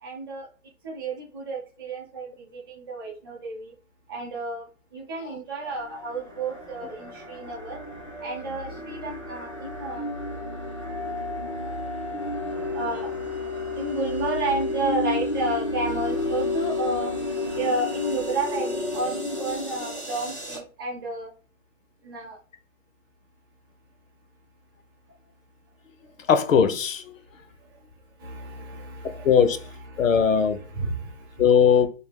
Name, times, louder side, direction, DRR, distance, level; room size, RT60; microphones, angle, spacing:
voice 1, 0.0-0.5 0.8-3.7 4.1-4.6 4.9-7.8 8.2-10.1 12.7-13.1 13.8-17.1 17.5-21.3 22.0-22.4 27.6-27.8 28.2-31.4, right 2 dB, 20° right, 0.6 m, -32 dB
sound 1, 5.6-20.6, left 2 dB, 25° left, 0.3 m, -31 dB
voice 2, 26.3-27.2 29.2-29.6 30.0-30.6 31.4-31.9, left 7 dB, 75° left, 0.7 m, -19 dB
3.5 x 2.3 x 3.6 m
hypercardioid pair, 170°, 40 cm